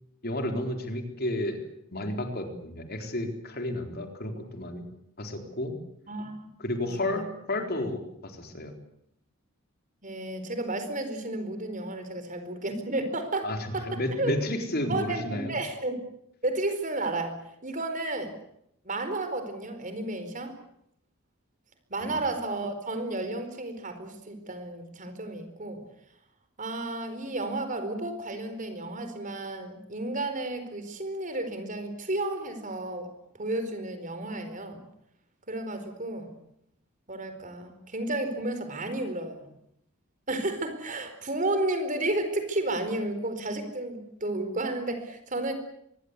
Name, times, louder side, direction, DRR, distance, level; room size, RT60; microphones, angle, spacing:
voice 1, 0.2-1.6 1.9-4.8 5.2-5.7 6.6-8.7 13.4-13.6 13.8-15.5 22.0-22.2, left 1 dB, 45° left, 5 dB, 4.0 m, -32 dB
voice 2, 6.8-7.2 10.0-14.3 14.9-16.0 16.4-17.3 17.6-18.3 18.8-20.5 21.9-25.8 26.6-33.1 33.4-34.8 35.5-36.3 37.1-39.5 40.3-45.5, right 2 dB, 35° right, 9 dB, 4.5 m, -32 dB
24.5 x 22.5 x 8.3 m, 0.75 s
head